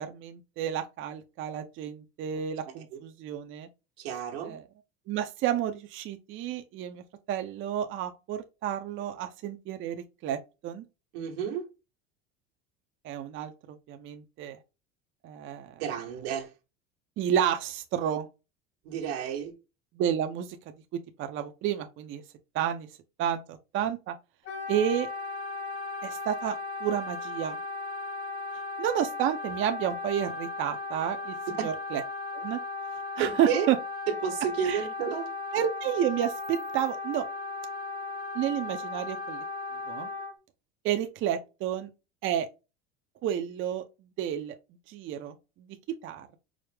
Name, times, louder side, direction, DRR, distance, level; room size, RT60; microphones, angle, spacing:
voice 1, 0.0-3.7 4.4-4.6 5.1-10.8 13.0-13.5 13.9-14.6 15.2-15.8 17.2-18.3 20.0-20.5 21.2-22.2 22.5-22.9 23.2-24.1 24.7-25.1 26.0-26.5 26.8-27.6 28.8-31.3 31.6-32.0 32.3-32.6 33.2-33.8 34.6-34.8 35.5-37.2 38.3-39.4 39.9-40.1 40.8-41.9 42.2-42.5 43.2-43.8 44.2-44.5 44.9-45.7 46.0-46.4, right 10 dB, 40° right, 0.6 m, -30 dB
voice 2, 4.0-4.5 11.1-11.7 15.8-16.5 18.8-19.5 31.6-31.7 33.2-33.7 34.1-35.3, right 8 dB, 90° right, 1.3 m, -31 dB
Wind instrument woodwind instrument, 24.4-40.3, left 3 dB, 85° left, 1.6 m, -36 dB
4.9 x 2.0 x 3.3 m
supercardioid pair, 125°, 30 cm